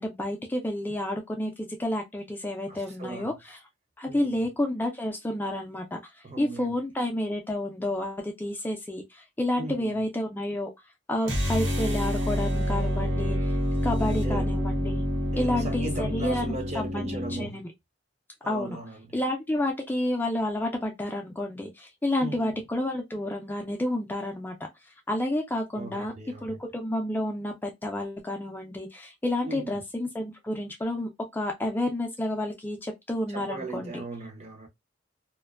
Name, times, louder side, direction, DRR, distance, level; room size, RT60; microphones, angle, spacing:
voice 1, 0.0-3.6 4.0-6.0 6.4-10.7 11.1-13.6 13.8-15.0 15.4-17.7 18.4-18.8 19.1-24.5 25.1-26.1 26.4-34.0, left 1 dB, 10° left, 0.3 m, -30 dB
voice 2, 2.7-3.3 4.1-4.5 6.2-6.7 9.5-10.0 14.0-14.5 15.3-17.7 18.4-19.2 22.2-22.6 25.7-26.6 29.4-29.8 33.3-34.7, right 2 dB, 35° right, 0.6 m, -38 dB
sound 1, 11.2-17.5, equal, 90° right, 1.0 m, -28 dB
2.4 x 2.2 x 2.3 m
head